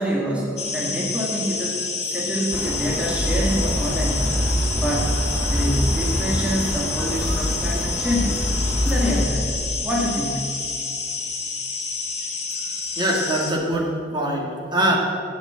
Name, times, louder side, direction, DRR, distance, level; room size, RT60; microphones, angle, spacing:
voice 1, 0.0-4.3 4.8-5.1 5.5-8.4 8.8-9.5 9.8-10.4, equal, 5° right, -4 dB, 1.6 m, -26 dB
sound 1, 0.6-13.5, left 4 dB, 40° left, 1.9 m, -29 dB
sound 2, 2.5-9.2, equal, 10° left, 2.2 m, -25 dB
voice 2, 13.0-14.5 14.7-15.0, right 1 dB, 25° right, -1 dB, 1.8 m, -22 dB
12.5 x 8.2 x 7.6 m, 2.4 s
head